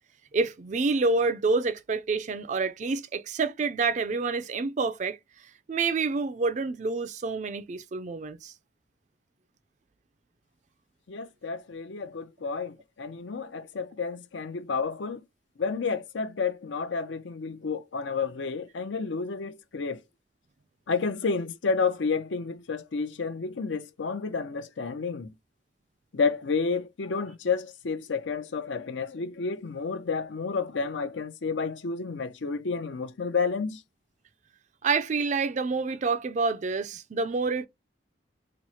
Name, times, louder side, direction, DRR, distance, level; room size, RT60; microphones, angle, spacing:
voice 1, 0.3-5.2 5.7-8.5 34.8-37.7, right 4 dB, 40° right, 0.4 m, -28 dB
voice 2, 11.1-15.2 15.6-20.0 20.9-25.3 26.1-33.8, left 5 dB, 80° left, 0.6 m, -30 dB
3.0 x 2.0 x 4.1 m
head